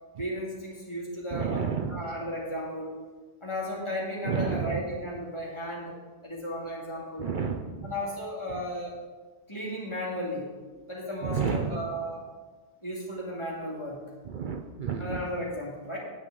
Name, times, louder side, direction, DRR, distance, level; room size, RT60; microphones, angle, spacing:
voice 1, 0.2-2.9 3.4-5.9 6.2-7.3 7.8-9.0 9.5-10.5 10.9-12.2 12.8-14.0 15.0-16.0, equal, 30° left, -4 dB, 2.3 m, -34 dB
voice 2, 1.3-2.1 4.2-4.8 7.2-7.9 8.5-8.6 11.2-11.9 14.2-15.2, right 6 dB, 55° right, 4 dB, 0.7 m, -31 dB
9.6 x 8.8 x 3.9 m, 1.4 s
omnidirectional pair, 1.1 m